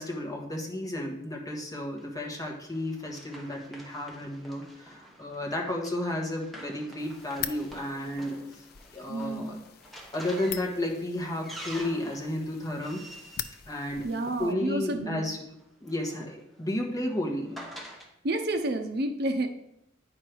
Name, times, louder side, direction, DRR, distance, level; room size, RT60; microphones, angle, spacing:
voice 1, 0.0-8.6 8.9-9.6 10.1-13.0 13.7-15.4 15.8-17.6, left 1 dB, 20° left, 0 dB, 1.3 m, -33 dB
Run, 2.0-14.6 15.6-18.1, right 1 dB, ahead, 1.2 m, -48 dB
sound 1, 7.0-14.5, left 10 dB, 55° left, 0.5 m, -43 dB
voice 2, 9.1-9.6 14.0-15.2 18.2-19.5, right 1 dB, 60° right, 7 dB, 0.7 m, -30 dB
9.5 x 5.2 x 4.6 m, 0.81 s
head